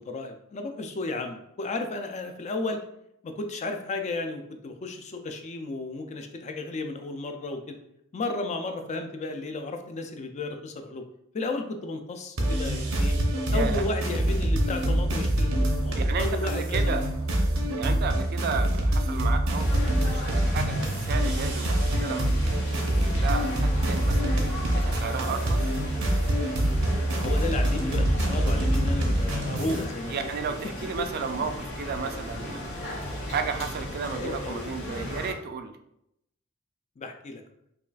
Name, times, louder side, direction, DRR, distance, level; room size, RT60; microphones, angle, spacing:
voice 1, 0.0-2.8 3.2-7.8 8.1-11.0 11.3-13.2 13.5-17.0 27.1-30.3 31.0-31.1 34.2-34.6 37.0-37.4, left 2 dB, 35° left, 5 dB, 0.4 m, -33 dB
sound 1, 12.4-29.8, right 1 dB, 85° right, 0.8 m, -25 dB
voice 2, 13.5-13.8 16.0-17.1 17.8-19.8 20.1-22.3 22.7-24.4 24.7-25.6 30.1-32.8 33.3-35.7, right 5 dB, 50° right, 8 dB, 0.3 m, -33 dB
sound 2, 19.6-35.3, left 1 dB, 75° left, 1.4 m, -36 dB
5.5 x 2.3 x 2.3 m, 0.79 s
head